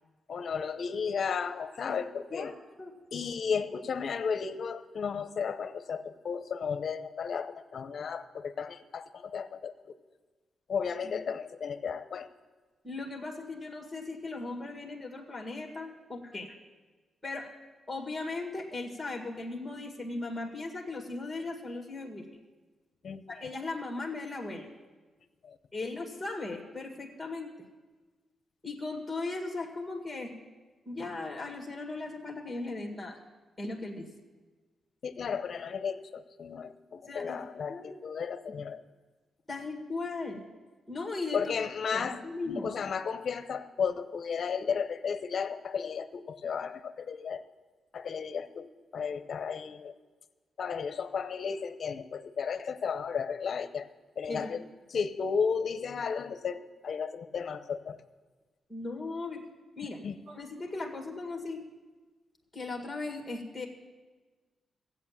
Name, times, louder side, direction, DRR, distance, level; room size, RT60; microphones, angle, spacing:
voice 1, 0.3-2.5 3.1-9.7 10.7-12.3 23.0-23.2 25.4-25.6 35.0-38.8 41.3-47.4 47.9-49.9 50.6-53.9 54.2-58.0 59.8-60.2, left 6 dB, 50° left, 12 dB, 0.7 m, -34 dB
voice 2, 2.3-2.9 11.0-11.1 12.8-16.6 17.2-17.5 17.9-22.4 23.3-24.7 25.7-27.5 28.6-30.4 30.9-33.2 33.6-34.1 37.1-37.4 37.7-38.0 39.5-40.4 40.9-41.5 41.9-42.7 54.3-54.5 58.7-59.4 59.8-61.6 62.5-63.7, left 3 dB, 5° left, 1 dB, 1.8 m, -37 dB
16.0 x 8.3 x 7.3 m, 1.3 s
wide cardioid pair, 145°, 0 cm